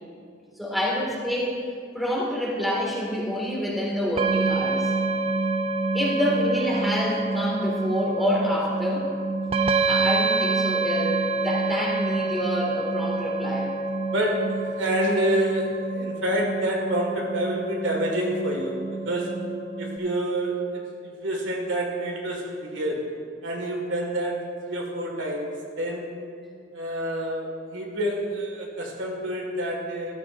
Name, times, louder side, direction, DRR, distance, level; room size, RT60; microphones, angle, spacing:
voice 1, 0.6-1.6 1.9-4.9 5.9-9.1 9.9-13.7, equal, ahead, -5 dB, 2.0 m, -27 dB
sound 1, 4.2-20.0, right 3 dB, 30° right, 0.5 m, -27 dB
voice 2, 14.1-19.4 19.8-23.1 23.4-26.1 26.7-30.1, right 1 dB, 80° right, 0 dB, 1.8 m, -28 dB
14.5 x 12.5 x 2.6 m, 2.2 s
head